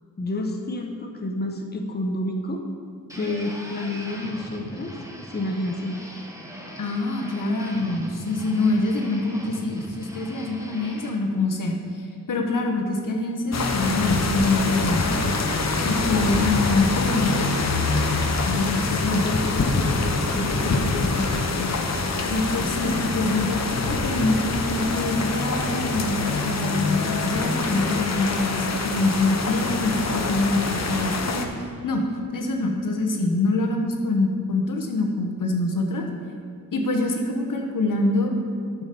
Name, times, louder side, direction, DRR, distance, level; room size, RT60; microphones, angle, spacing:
voice 1, 0.2-2.6 3.1-5.0 5.3-6.0 16.9-17.5 19.1-21.7, left 2 dB, 30° left, 2 dB, 0.9 m, -29 dB
sound 1, 3.1-11.1, equal, 10° right, 1.3 m, -40 dB
voice 2, 6.8-11.8 12.3-15.3 15.8-17.4 18.4-19.3 22.3-32.0 32.3-36.0 36.7-38.3, left 2 dB, 75° left, 2 dB, 1.3 m, -25 dB
sound 2, 13.5-31.5, left 3 dB, 55° left, 1.0 m, -25 dB
8.7 x 6.3 x 6.8 m, 2.3 s
wide cardioid pair, 100°, 33 cm